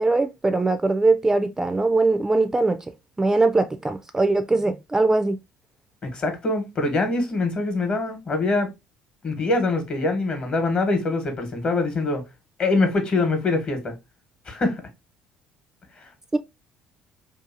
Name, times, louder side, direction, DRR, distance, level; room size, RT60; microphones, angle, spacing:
voice 1, 0.0-2.9 3.2-5.4 16.3-16.4, right 3 dB, 15° right, 0.3 m, -21 dB
voice 2, 6.0-8.7 9.2-12.2 12.6-13.9 14.5-14.9 16.0-16.1, left 3 dB, 45° left, 1.0 m, -24 dB
2.7 x 2.4 x 2.4 m
hypercardioid pair, 65°, 3 cm